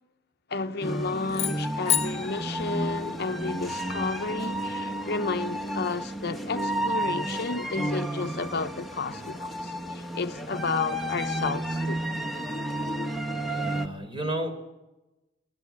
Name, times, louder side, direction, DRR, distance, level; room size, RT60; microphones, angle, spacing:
voice 1, 0.5-12.0, left 4 dB, 55° left, 0.7 m, -32 dB
sound 1, 0.8-13.9, right 1 dB, ahead, 1.5 m, -32 dB
sound 2, 1.3-3.6, left 10 dB, 30° left, 1.0 m, -31 dB
voice 2, 13.5-14.5, right 1 dB, 25° right, 4.6 m, -32 dB
24.0 x 17.0 x 8.7 m
head